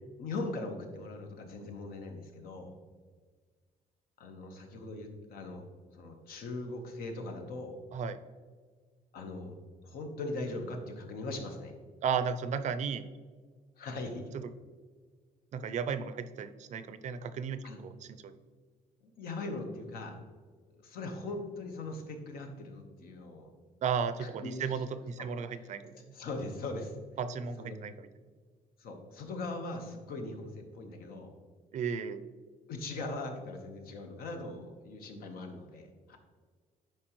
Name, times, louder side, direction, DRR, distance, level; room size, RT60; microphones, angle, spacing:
voice 1, 0.2-2.7 4.2-5.7 5.9-7.8 9.1-9.6 9.8-11.7 13.8-14.3 17.6-17.8 19.0-20.2 20.7-23.5 24.2-24.8 25.2-25.3 25.5-27.0 27.6-27.8 28.8-31.3 32.7-36.2, left 2 dB, 75° left, 4 dB, 1.1 m, -40 dB
voice 2, 12.0-13.1 15.5-18.4 23.8-25.9 27.2-28.1 31.7-32.3, right 6 dB, 50° right, 12 dB, 0.5 m, -34 dB
10.5 x 4.6 x 3.1 m, 1.5 s
cardioid pair, 140°, 16 cm